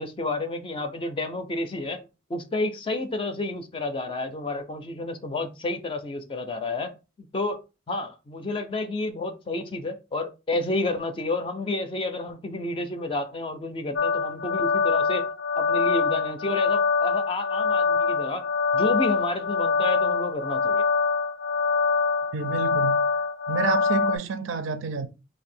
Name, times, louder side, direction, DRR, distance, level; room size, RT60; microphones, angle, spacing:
voice 1, 0.0-7.6 7.9-15.3 15.6-18.5 18.7-20.8, left 2 dB, 25° left, 0.4 m, -30 dB
sound 1, 14.0-24.2, left 5 dB, 75° left, 0.5 m, -24 dB
voice 2, 22.3-23.1 23.5-25.1, right 5 dB, 85° right, 0.4 m, -29 dB
2.6 x 2.6 x 4.2 m
head